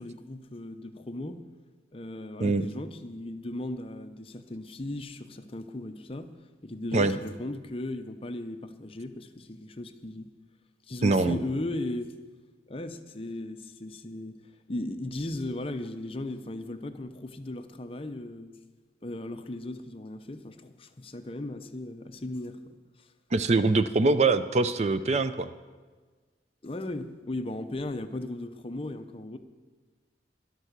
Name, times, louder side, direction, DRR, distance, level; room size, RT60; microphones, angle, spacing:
voice 1, 0.0-1.4 1.9-6.3 6.6-10.3 10.9-12.1 12.7-14.4 14.7-18.6 19.0-23.1 26.6-29.4, left 1 dB, 30° left, 8 dB, 0.7 m, -37 dB
voice 2, 11.0-11.4 23.3-25.5, right 3 dB, 35° right, 12 dB, 0.4 m, -23 dB
11.5 x 11.0 x 6.6 m, 1.4 s
head